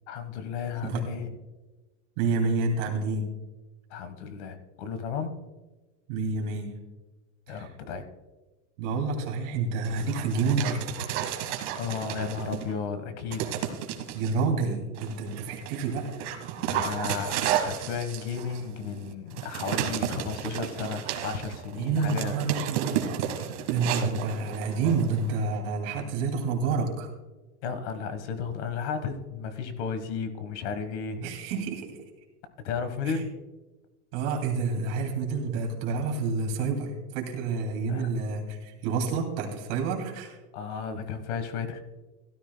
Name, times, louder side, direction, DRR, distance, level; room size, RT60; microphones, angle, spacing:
voice 1, 0.1-1.3 3.9-5.4 7.5-8.0 11.7-13.8 16.6-22.4 27.6-31.2 32.6-33.3 37.9-38.1 40.5-41.8, left 6 dB, 75° left, 10 dB, 1.5 m, -34 dB
voice 2, 2.2-3.3 6.1-6.8 7.5-7.7 8.8-10.9 14.1-16.1 21.7-27.1 31.2-32.0 33.1-33.2 34.1-40.4, right 4 dB, 55° right, 2 dB, 2.6 m, -29 dB
Dog, 9.8-12.7 13.3-14.3 15.0-25.3, right 10 dB, 70° right, 1.6 m, -33 dB
16.5 x 13.0 x 2.3 m, 1.2 s
supercardioid pair, 175°, 35 cm